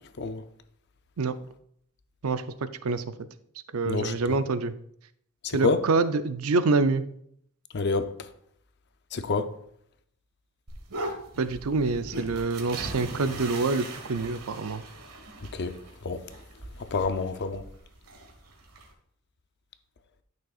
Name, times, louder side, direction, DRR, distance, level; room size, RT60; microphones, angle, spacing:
voice 1, 3.7-4.7 5.5-7.0 11.4-14.8, right 3 dB, 65° right, 0.5 m, -26 dB
voice 2, 5.4-5.8 7.7-8.0 9.1-9.5 15.5-15.8 16.0-16.2 16.9-17.6, left 4 dB, 50° left, 0.6 m, -27 dB
sound 1, 10.7-18.9, right 1 dB, 90° right, 1.5 m, -40 dB
11.5 x 6.3 x 2.4 m
head